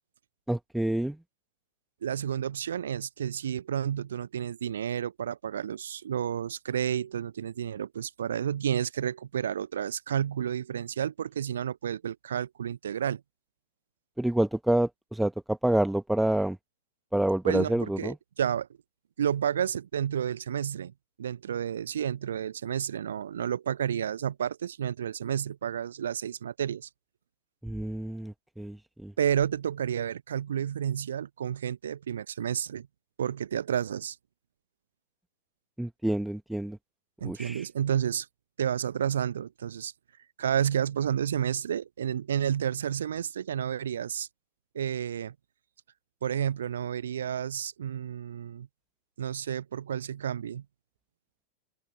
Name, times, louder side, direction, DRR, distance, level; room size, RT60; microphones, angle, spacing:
voice 1, 0.5-1.2 14.2-16.6 17.1-18.1 27.6-29.1 35.8-36.8 37.2-37.7, right 1 dB, 5° right, 1.2 m, -28 dB
voice 2, 2.0-13.2 17.4-18.7 19.2-20.9 21.2-26.9 29.2-32.9 33.2-34.2 37.2-38.3 38.6-39.9 40.4-44.3 44.7-45.3 46.2-48.7 49.2-50.6, right 9 dB, 65° right, 0.6 m, -31 dB
open air
figure-of-eight pair, 90°, 0 cm